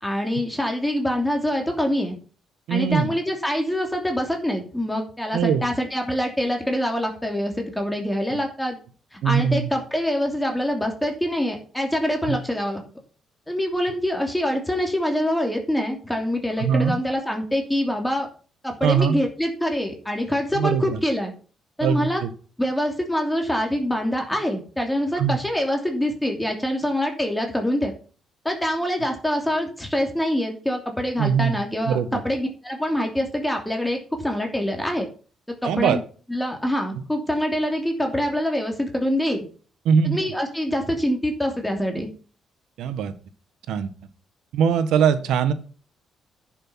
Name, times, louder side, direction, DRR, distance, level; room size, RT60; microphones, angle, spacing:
voice 1, 0.0-2.2 2.7-8.8 9.1-12.8 13.5-18.3 18.6-21.3 21.8-22.2 22.6-27.9 28.4-32.0 32.2-35.1 35.6-36.0 36.3-39.5 40.0-42.1, equal, 5° left, 2 dB, 2.9 m, -25 dB
voice 2, 2.7-3.1 5.3-5.6 8.3-8.4 9.2-9.7 12.3-12.4 16.6-16.9 18.8-19.2 20.5-21.0 21.8-22.3 25.2-25.4 31.2-31.6 31.9-32.2 35.6-36.0 39.8-40.2 42.8-43.1 43.7-43.9 44.5-45.5, right 7 dB, 80° right, 12 dB, 1.3 m, -21 dB
10.5 x 6.6 x 5.8 m, 0.39 s
cardioid pair, 90°, 0 cm